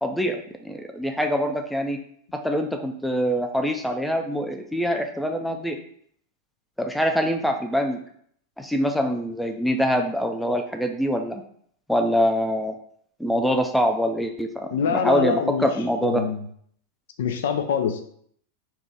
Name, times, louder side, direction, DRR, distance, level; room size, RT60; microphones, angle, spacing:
voice 1, 0.0-2.0 2.3-5.8 6.8-8.0 8.6-11.4 11.9-12.7 13.2-16.2, equal, ahead, 4 dB, 0.4 m, -24 dB
voice 2, 14.7-15.7 16.0-16.4 17.2-18.0, left 7 dB, 60° left, 6 dB, 0.4 m, -24 dB
3.5 x 2.9 x 3.9 m, 0.63 s
figure-of-eight pair, 90°, 0 cm